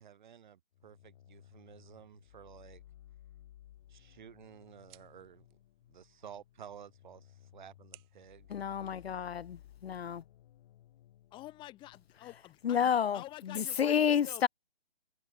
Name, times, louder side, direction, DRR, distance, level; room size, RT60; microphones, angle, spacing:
voice 1, 0.0-2.8 3.9-5.5 5.9-8.5, right 8 dB, 45° right, 3.4 m, -53 dB
sound 1, 0.7-12.7, left 12 dB, 35° left, 4.0 m, -59 dB
sound 2, 3.6-9.6, right 27 dB, 25° right, 3.2 m, -65 dB
voice 2, 8.5-9.6 9.8-10.2 12.6-13.2 13.6-14.5, left 8 dB, 70° left, 0.5 m, -29 dB
voice 3, 11.3-14.5, left 16 dB, 15° left, 2.5 m, -48 dB
figure-of-eight pair, 145°, 32 cm